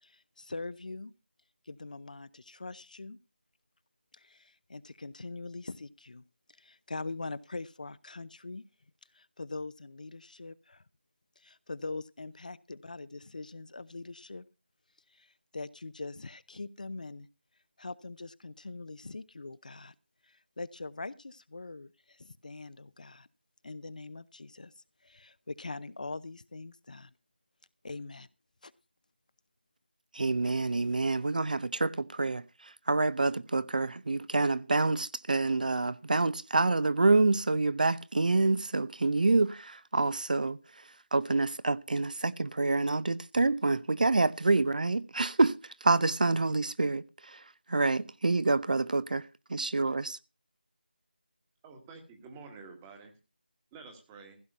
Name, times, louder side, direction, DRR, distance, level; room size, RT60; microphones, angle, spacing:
voice 1, 0.0-1.1 1.7-3.2 4.1-6.2 6.6-8.6 9.1-10.8 11.4-14.4 15.1-17.3 17.8-19.9 20.2-23.3 23.6-24.7 25.0-27.1 27.8-28.3 28.6-28.7, left 3 dB, 50° left, 0.6 m, -42 dB
voice 2, 30.1-40.6 41.1-45.5 45.8-47.4 47.7-50.2, right 3 dB, 50° right, 0.6 m, -27 dB
voice 3, 51.6-53.2 53.7-54.4, right 4 dB, 10° right, 1.3 m, -49 dB
15.5 x 6.0 x 6.6 m
figure-of-eight pair, 170°, 5 cm